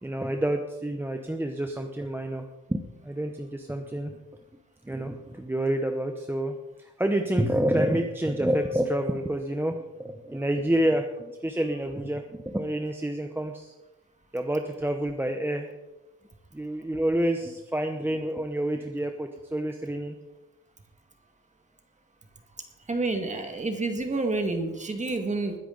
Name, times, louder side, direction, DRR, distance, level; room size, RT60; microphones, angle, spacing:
voice 1, 0.0-4.1 4.8-13.7 14.3-15.7 16.5-20.1, right 1 dB, 5° right, 4 dB, 0.8 m, -28 dB
voice 2, 22.9-25.6, right 3 dB, 25° right, 4 dB, 1.9 m, -29 dB
21.0 x 10.5 x 3.9 m, 1.0 s
wide cardioid pair, 155°, 30 cm